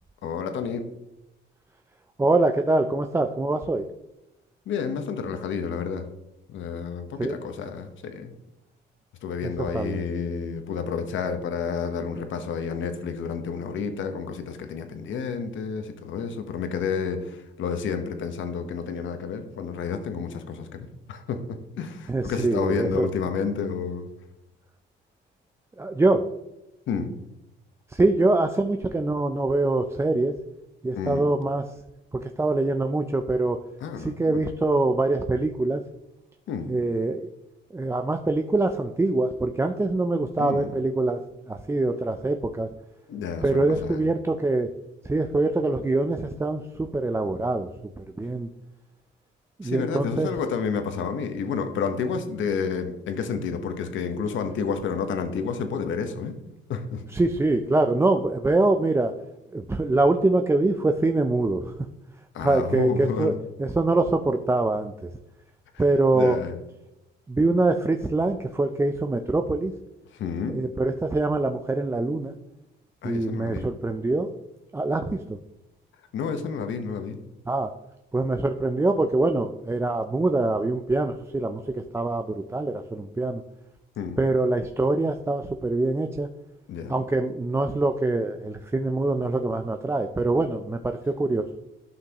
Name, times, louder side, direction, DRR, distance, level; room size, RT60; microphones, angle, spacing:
voice 1, 0.2-0.8 4.7-6.1 6.5-8.3 9.2-24.1 26.9-27.1 31.0-31.3 33.8-34.5 36.5-36.7 40.4-40.7 43.1-44.0 49.6-56.3 56.7-57.0 62.3-63.4 66.1-66.6 70.1-70.6 73.0-73.7 76.1-77.2 84.0-84.2 86.7-86.9, left 6 dB, 75° left, 8 dB, 1.0 m, -30 dB
voice 2, 2.2-3.8 7.2-7.4 9.4-10.1 22.1-23.1 25.8-26.2 27.9-30.3 30.8-31.7 32.1-33.6 34.0-35.8 36.7-37.3 37.7-41.2 41.5-42.7 43.4-44.7 45.0-47.7 48.0-48.5 49.6-50.3 57.1-59.1 59.5-61.7 62.4-63.3 63.6-65.1 65.8-66.4 67.3-69.7 70.5-72.3 73.0-74.3 74.7-75.4 77.5-77.7 78.1-83.4 84.2-86.3 86.9-91.5, right 2 dB, 15° right, 5 dB, 0.4 m, -24 dB
11.5 x 5.9 x 2.9 m, 0.93 s
cardioid pair, 90°, 20 cm